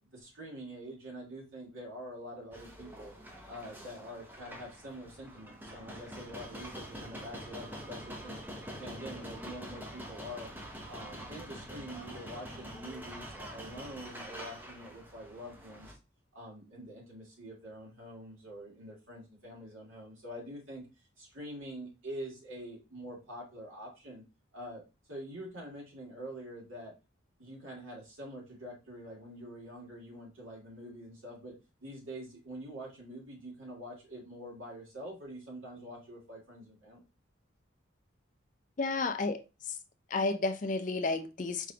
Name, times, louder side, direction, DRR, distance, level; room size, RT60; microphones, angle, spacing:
voice 1, 0.0-3.1 3.5-8.4 8.8-10.5 10.9-16.0 16.3-20.8 21.2-24.2 24.5-24.8 25.1-26.9 27.4-31.5 31.8-37.0, equal, 75° right, 2.2 m, -45 dB
sound 1, 2.5-15.9, equal, 10° right, 0.7 m, -45 dB
voice 2, 38.8-39.4 40.1-41.7, left 3 dB, 40° left, 0.4 m, -31 dB
4.8 x 3.6 x 2.8 m
head